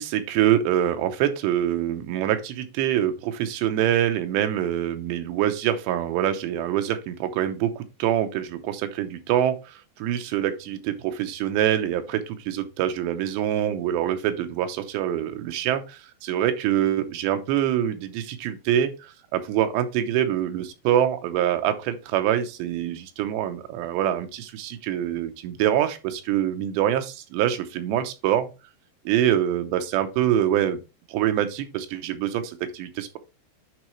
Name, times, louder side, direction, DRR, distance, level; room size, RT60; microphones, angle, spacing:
voice 1, 0.0-28.5 29.1-30.8 31.1-33.2, right 11 dB, 85° right, 9 dB, 3.1 m, -25 dB
9.3 x 4.7 x 3.2 m, 0.29 s
omnidirectional pair, 4.9 m